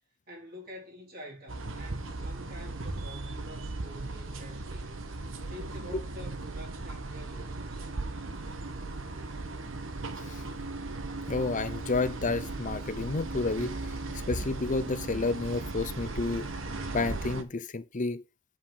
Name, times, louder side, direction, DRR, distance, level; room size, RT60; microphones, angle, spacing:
voice 1, 0.3-5.0 5.5-7.9, left 1 dB, 50° right, 4.2 m, -47 dB
sound 1, 1.5-17.4, right 2 dB, 70° right, 1.3 m, -37 dB
voice 2, 11.3-13.7 14.3-16.5 16.9-18.2, left 3 dB, 40° left, 0.7 m, -30 dB
8.6 x 7.7 x 4.0 m
head